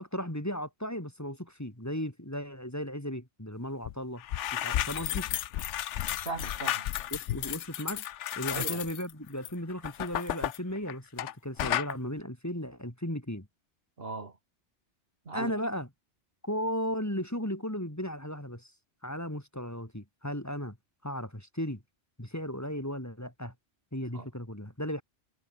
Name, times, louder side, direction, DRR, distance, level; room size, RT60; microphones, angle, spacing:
voice 1, 0.0-4.2 4.5-5.3 7.1-8.0 8.3-13.5 15.3-15.9 16.4-18.7 19.0-20.8 21.0-21.8 22.2-23.5 23.9-25.0, equal, 15° left, 3.3 m, -35 dB
sound 1, 3.8-11.3 11.6-11.9, left 12 dB, 90° left, 1.0 m, -33 dB
voice 2, 6.2-6.9 8.5-8.8 14.0-14.4 15.3-15.5 24.1-24.3, right 3 dB, 55° right, 2.1 m, -38 dB
omnidirectional pair, 1.2 m